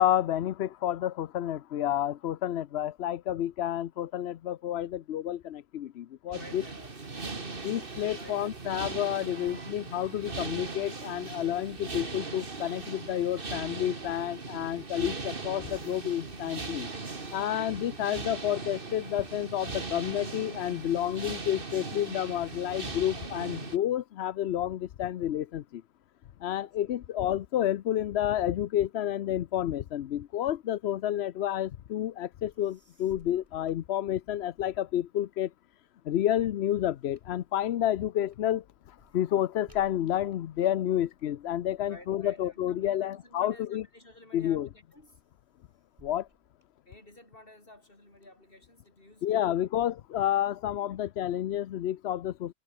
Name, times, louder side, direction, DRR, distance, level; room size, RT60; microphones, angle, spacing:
voice 1, 0.0-6.6 7.6-16.9 17.3-25.8 26.4-35.5 36.1-43.8 44.3-44.7 46.0-46.3 49.2-52.5, left 11 dB, 65° left, 0.8 m, -30 dB
voice 2, 6.3-8.6 17.4-17.7 26.6-26.9 41.8-45.2 46.9-49.8 50.8-51.1, left 1 dB, 45° left, 6.4 m, -53 dB
sound 1, 6.3-23.8, right 3 dB, 45° right, 2.3 m, -39 dB
sound 2, 32.5-34.6 35.1-43.7 44.2-44.6 44.9-47.4 47.9-48.9, right 1 dB, 25° right, 7.9 m, -63 dB
omnidirectional pair, 1.3 m